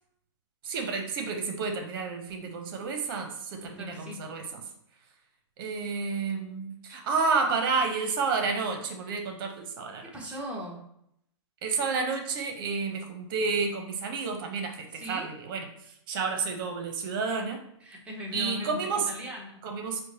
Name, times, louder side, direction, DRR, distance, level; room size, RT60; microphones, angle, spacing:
voice 1, 0.6-4.6 5.6-10.1 11.6-15.6 16.1-17.6 18.3-19.1 19.6-20.0, right 4 dB, 50° right, 4 dB, 0.8 m, -30 dB
voice 2, 3.6-4.3 10.0-10.8 14.9-15.3 17.8-19.6, left 1 dB, 10° right, -3 dB, 0.8 m, -39 dB
4.4 x 2.1 x 2.8 m, 0.74 s
hypercardioid pair, 135°, 15 cm